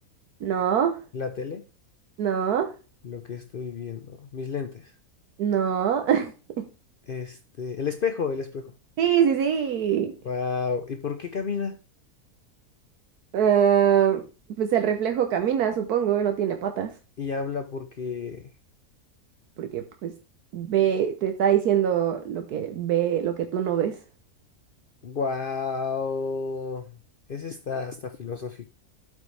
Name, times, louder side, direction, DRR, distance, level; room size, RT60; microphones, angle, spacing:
voice 1, 0.4-0.9 2.2-2.7 5.4-6.7 9.0-10.1 13.3-14.2 14.6-16.9 19.6-20.1 20.5-24.0, right 9 dB, 80° right, 1.3 m, -23 dB
voice 2, 1.1-1.6 3.0-4.9 7.1-8.7 10.2-11.8 17.2-18.5 25.0-27.0 27.3-28.7, left 5 dB, 55° left, 0.6 m, -31 dB
12.5 x 5.3 x 3.3 m
omnidirectional pair, 1.6 m